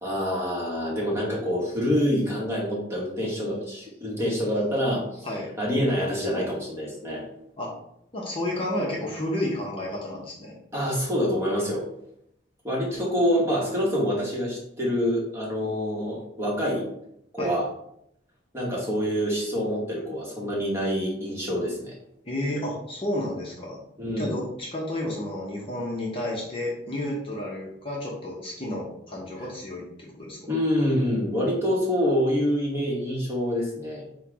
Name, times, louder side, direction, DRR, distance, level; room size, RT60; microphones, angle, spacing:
voice 1, 0.0-5.3 5.6-7.2 10.7-11.9 12.6-16.9 17.3-17.6 18.5-21.9 24.0-24.4 30.5-34.0, equal, 15° right, -5 dB, 1.2 m, -26 dB
voice 2, 8.1-10.5 17.4-17.6 22.2-23.8 24.2-30.5, left 1 dB, 30° left, -3 dB, 0.8 m, -31 dB
4.4 x 2.3 x 4.6 m, 0.75 s
head